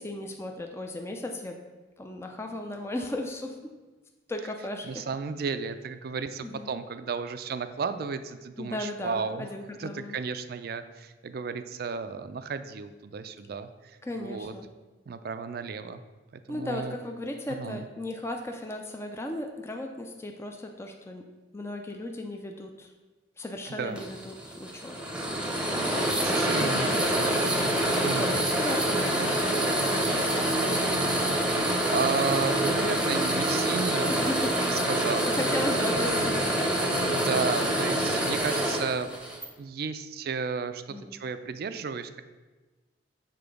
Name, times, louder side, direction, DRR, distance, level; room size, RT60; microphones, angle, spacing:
voice 1, 0.0-1.6 2.0-3.7 4.3-5.0 6.4-6.7 8.6-10.2 14.0-14.7 16.5-21.3 21.5-22.9 23.4-25.0 26.1-27.4 28.1-30.7 34.1-34.7 35.2-36.6 40.9-41.2, left 1 dB, 15° left, 3 dB, 0.4 m, -36 dB
voice 2, 4.9-9.5 9.8-14.5 15.1-16.0 16.5-17.0 17.6-17.8 23.7-24.0 25.7-27.6 28.0-28.3 31.5-34.2 34.9-35.3 37.0-42.2, right 5 dB, 55° right, 11 dB, 0.4 m, -33 dB
sound 1, 24.0-39.5, right 1 dB, 5° right, 0.8 m, -26 dB
sound 2, 26.5-38.4, equal, 90° left, 0.9 m, -39 dB
6.9 x 3.7 x 5.2 m, 1.2 s
head